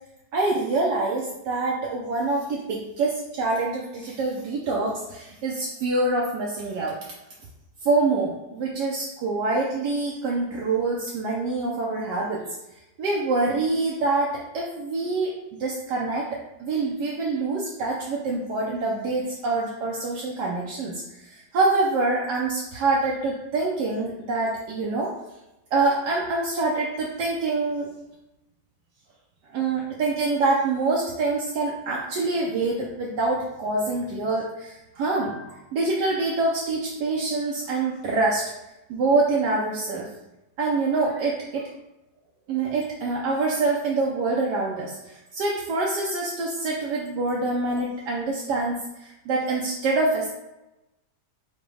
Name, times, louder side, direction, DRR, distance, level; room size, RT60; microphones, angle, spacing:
voice 1, 0.3-7.0 7.8-12.4 13.0-15.3 15.6-25.1 25.7-27.9 29.5-38.4 38.9-40.1 40.6-41.7 42.5-50.3, right 3 dB, 80° right, -3 dB, 1.3 m, -25 dB
5.0 x 2.2 x 4.7 m, 0.95 s
omnidirectional pair, 1.8 m